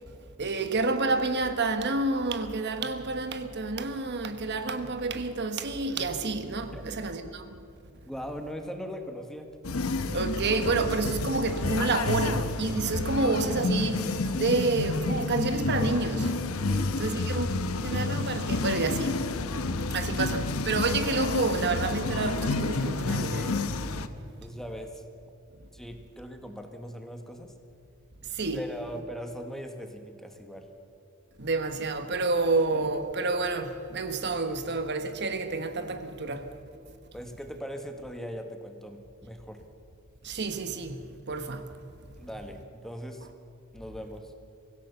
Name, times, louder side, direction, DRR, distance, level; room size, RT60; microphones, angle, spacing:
voice 1, 0.4-7.5 10.1-16.3 17.0-19.3 19.9-23.5 28.3-28.6 31.4-36.5 40.2-41.0 41.3-41.6, right 3 dB, 55° right, 1.3 m, -29 dB
voice 2, 8.0-9.5 16.7-17.2 24.4-25.0 25.7-27.5 28.5-30.7 37.1-39.6 42.2-43.3 43.7-44.3, equal, ahead, 1.5 m, -40 dB
sound 1, 9.6-24.1, left 3 dB, 90° left, 1.0 m, -30 dB
24.0 x 16.0 x 6.9 m
head